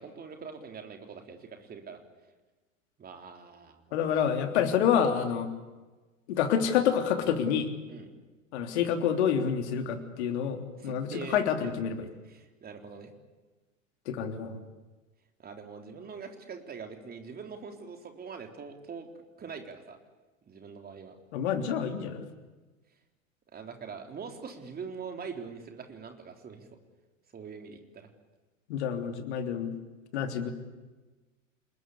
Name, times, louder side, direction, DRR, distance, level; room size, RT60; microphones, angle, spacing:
voice 1, 0.0-2.0 3.0-4.2 7.9-8.1 10.8-11.7 12.2-13.1 15.4-20.0 20.4-21.2 23.5-26.7 27.3-28.1, right 5 dB, 25° right, 4 dB, 3.8 m, -43 dB
voice 2, 3.9-5.5 6.3-7.7 8.5-11.9 14.1-14.6 21.3-22.3 28.7-29.7 30.1-30.5, left 8 dB, 55° left, 6 dB, 3.4 m, -28 dB
29.0 x 20.0 x 8.4 m, 1.2 s
figure-of-eight pair, 85°, 39 cm